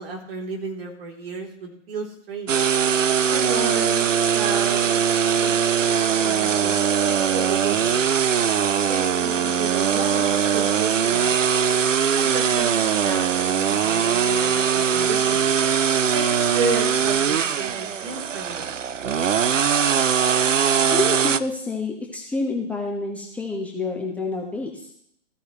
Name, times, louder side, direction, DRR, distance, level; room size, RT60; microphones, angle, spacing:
voice 1, 0.0-2.5 3.3-4.0 4.3-5.0 5.3-5.5 6.1-6.7 7.0-8.2 8.9-11.4 12.2-15.5 16.1-18.6, right 4 dB, 50° right, 0 dB, 3.5 m, -32 dB
sound 1, 2.5-21.4, right 7 dB, 80° right, 0.7 m, -21 dB
voice 2, 20.4-24.9, left 3 dB, 5° left, -1 dB, 1.2 m, -29 dB
14.5 x 13.5 x 3.2 m, 0.69 s
figure-of-eight pair, 125°, 37 cm